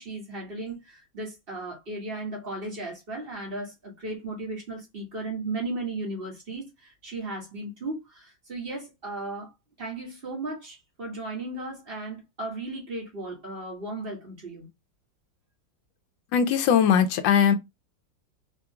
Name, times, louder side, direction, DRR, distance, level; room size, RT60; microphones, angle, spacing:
voice 1, 0.0-9.5 9.8-14.7, right 2 dB, 30° right, 1.8 m, -35 dB
voice 2, 16.3-17.5, left 8 dB, 90° left, 1.4 m, -20 dB
4.6 x 3.0 x 2.3 m
omnidirectional pair, 2.0 m